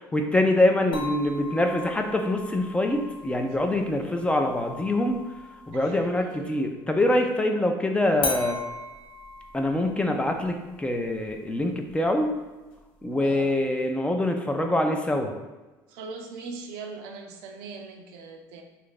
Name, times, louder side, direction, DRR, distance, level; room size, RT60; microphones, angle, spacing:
voice 1, 0.0-5.2 5.7-8.6 9.5-12.3 13.0-15.3, left 1 dB, 10° left, 4 dB, 0.4 m, -24 dB
sound 1, 0.9-6.5 8.2-13.2, left 3 dB, 60° left, 0.8 m, -39 dB
voice 2, 5.7-6.6 13.2-13.6 15.9-18.6, right 4 dB, 80° right, 4 dB, 0.5 m, -40 dB
2.6 x 2.4 x 3.7 m, 1.2 s
supercardioid pair, 90°, 10 cm